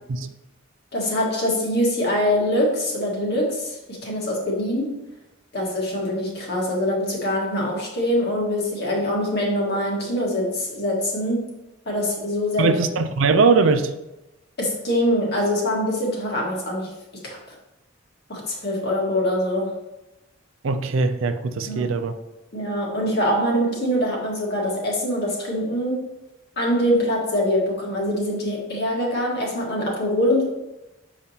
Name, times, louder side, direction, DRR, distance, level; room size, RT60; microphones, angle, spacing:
voice 1, 0.9-5.0 5.5-11.5 11.8-12.8 14.6-17.5 18.3-19.8 21.7-21.9 22.5-26.0 26.5-30.4, left 1 dB, 55° left, -2 dB, 1.7 m, -24 dB
voice 2, 12.6-13.9 20.6-22.1, right 4 dB, 75° right, 9 dB, 0.5 m, -20 dB
6.8 x 4.9 x 2.9 m, 0.95 s
head